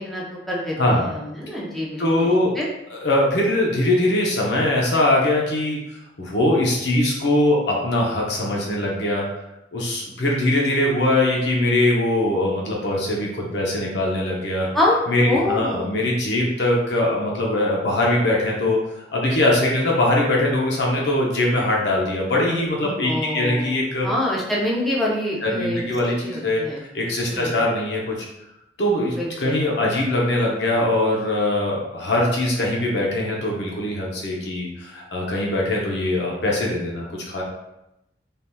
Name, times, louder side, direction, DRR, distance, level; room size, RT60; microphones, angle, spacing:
voice 1, 0.0-2.7 14.7-16.0 23.0-23.7 24.0-25.8 26.2-26.8 27.3-27.6 29.2-29.6, left 1 dB, ahead, -5 dB, 0.6 m, -26 dB
voice 2, 0.8-1.1 2.0-2.5 2.9-5.8 6.2-9.2 9.7-14.7 15.1-18.8 19.1-24.1 25.4-26.6 26.9-28.2 28.8-37.4, left 1 dB, 70° left, -2 dB, 0.7 m, -21 dB
3.4 x 2.8 x 2.2 m, 0.88 s
head